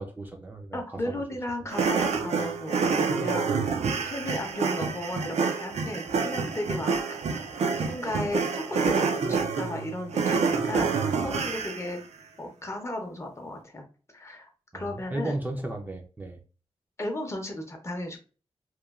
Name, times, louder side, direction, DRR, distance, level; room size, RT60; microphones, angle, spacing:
voice 1, 0.0-1.0 14.7-16.4, right 1 dB, 15° right, 1 dB, 0.4 m, -35 dB
voice 2, 0.7-3.6 4.0-7.2 7.6-12.0 12.4-13.8 14.1-15.3 17.0-18.2, left 1 dB, 25° left, 3 dB, 0.6 m, -35 dB
sound 1, 1.7-11.9, right 5 dB, 85° right, 0.4 m, -27 dB
3.0 x 2.2 x 2.3 m, 0.36 s
wide cardioid pair, 140°, 11 cm